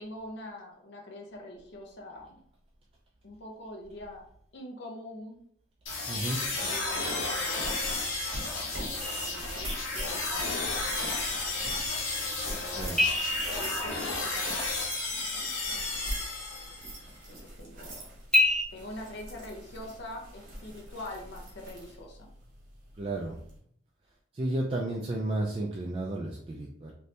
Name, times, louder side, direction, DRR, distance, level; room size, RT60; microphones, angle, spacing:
voice 1, 0.0-2.4 3.2-4.2 4.5-5.4 6.4-7.9 8.6-10.6 10.9-11.1 11.5-12.1 12.4-14.7 15.1-15.6 17.3-18.1 18.7-22.3, left 1 dB, 55° left, 0 dB, 0.6 m, -45 dB
sound 1, 5.9-17.0, left 3 dB, 90° left, 1.0 m, -33 dB
voice 2, 6.1-6.4 12.8-13.0 23.0-23.4 24.3-26.9, right 1 dB, 30° right, -2 dB, 0.3 m, -32 dB
sound 2, 6.4-23.6, right 1 dB, 45° right, 1.0 m, -44 dB
sound 3, 9.0-10.3 13.0-15.0 18.3-18.6, left 2 dB, 5° left, 0.8 m, -29 dB
2.6 x 2.6 x 3.2 m, 0.65 s
head